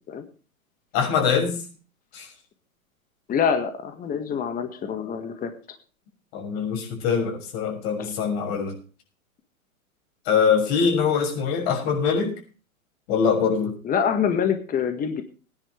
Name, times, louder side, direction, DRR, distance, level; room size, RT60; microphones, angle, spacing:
voice 1, 0.9-1.7 2.1-2.3 6.3-8.8 10.3-12.4 13.1-13.8, left 6 dB, 45° left, 1 dB, 6.4 m, -23 dB
voice 2, 3.3-5.5 8.0-8.1 13.8-15.2, left 7 dB, 20° left, 7 dB, 1.7 m, -25 dB
20.0 x 10.5 x 3.4 m, 0.37 s
hypercardioid pair, 110°, 43 cm